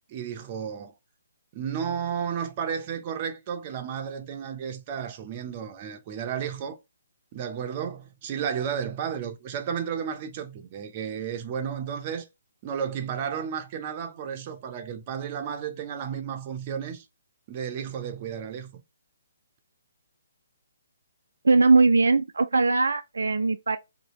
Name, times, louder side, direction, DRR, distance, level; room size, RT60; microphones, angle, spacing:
voice 1, 0.1-0.9 1.5-6.8 7.3-12.3 12.6-17.1 17.5-18.8, right 7 dB, 35° right, 0.6 m, -33 dB
voice 2, 21.4-23.8, right 3 dB, 75° right, 0.3 m, -20 dB
2.8 x 2.5 x 3.0 m
figure-of-eight pair, 135°, 0 cm